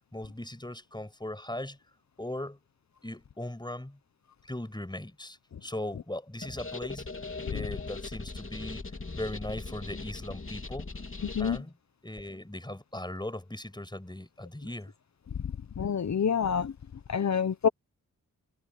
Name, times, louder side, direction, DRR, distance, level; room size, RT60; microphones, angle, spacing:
voice 1, 0.0-1.8 2.2-2.6 3.0-4.0 4.4-7.1 7.5-10.9 11.4-11.8 12.0-14.9, left 1 dB, 15° left, 6.2 m, -39 dB
sound 1, 6.4-11.6, left 3 dB, 40° left, 3.3 m, -40 dB
voice 2, 15.8-16.7 17.1-17.7, left 7 dB, 55° left, 1.0 m, -27 dB
cardioid pair, 55°, 33 cm